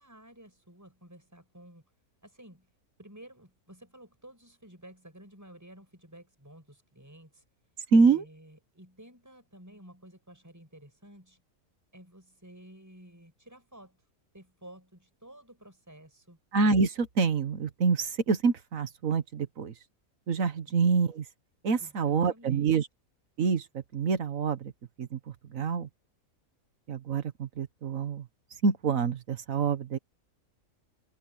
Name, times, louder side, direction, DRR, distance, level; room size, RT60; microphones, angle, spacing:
voice 1, 0.0-1.9 2.2-2.7 3.0-7.4 7.9-11.4 11.9-14.0 14.3-16.4 20.6-20.7 21.8-22.7, right 1 dB, 10° right, 6.3 m, -52 dB
voice 2, 7.9-8.2 16.5-19.7 20.3-21.2 21.6-22.9 23.4-24.7 25.0-25.2 25.5-25.9 26.9-28.2 28.6-30.0, right 5 dB, 65° right, 1.6 m, -26 dB
omnidirectional pair, 1.6 m